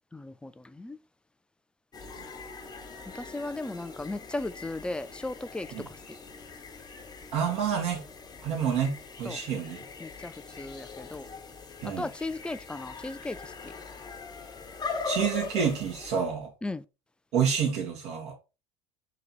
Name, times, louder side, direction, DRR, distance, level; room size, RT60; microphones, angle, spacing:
voice 1, 0.1-1.0 3.2-5.7 9.2-9.4 10.0-10.3 10.6-11.3 12.0-13.4 16.6-16.8, left 2 dB, 5° left, 0.3 m, -36 dB
sound 1, 1.9-16.1, left 4 dB, 30° left, 1.1 m, -41 dB
voice 2, 7.3-8.0 8.4-9.8 11.8-12.1 15.0-16.5 17.3-18.3, right 7 dB, 50° right, 2.0 m, -28 dB
3.9 x 2.9 x 4.2 m
hypercardioid pair, 70°, 14 cm